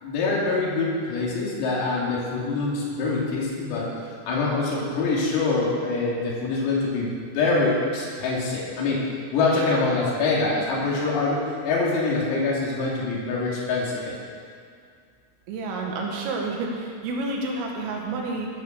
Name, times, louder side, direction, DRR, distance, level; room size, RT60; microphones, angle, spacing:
voice 1, 0.0-3.9 4.3-9.0 9.3-14.1, left 3 dB, 85° left, -5 dB, 5.8 m, -25 dB
voice 2, 15.5-18.5, right 3 dB, 75° right, 0 dB, 4.4 m, -29 dB
17.0 x 9.8 x 6.7 m, 2.3 s
omnidirectional pair, 5.9 m